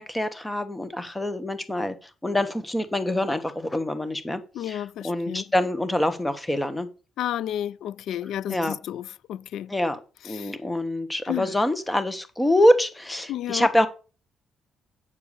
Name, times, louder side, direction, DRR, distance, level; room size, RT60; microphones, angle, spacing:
voice 1, 0.0-6.9 8.5-8.8 9.7-13.9, left 1 dB, 10° left, 1.3 m, -25 dB
voice 2, 4.5-5.4 7.2-9.7 10.3-10.5 11.3-11.5 13.3-13.7, left 11 dB, 80° left, 0.3 m, -31 dB
8.6 x 4.6 x 6.9 m
cardioid pair, 90°, 0 cm